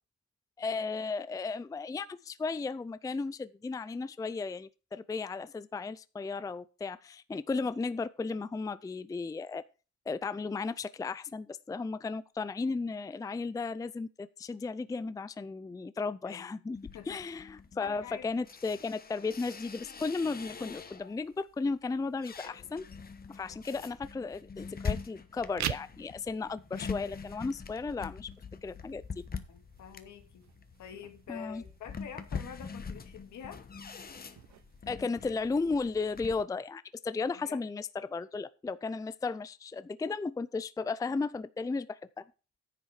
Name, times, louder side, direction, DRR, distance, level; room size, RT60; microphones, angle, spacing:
voice 1, 0.6-9.6 10.1-16.8 17.1-22.8 23.3-28.3 28.6-29.0 31.3-31.6 34.9-42.0, left 4 dB, 10° left, 0.4 m, -35 dB
sound 1, 16.7-21.3 21.7-36.4, left 5 dB, 30° left, 1.1 m, -43 dB
voice 2, 17.8-18.3 23.5-23.8 29.5-30.4 30.8-33.6 37.4-37.6, left 8 dB, 75° left, 2.0 m, -47 dB
sound 2, 25.4-36.4, right 11 dB, 65° right, 0.8 m, -46 dB
10.0 x 7.4 x 4.8 m
cardioid pair, 90°, 30 cm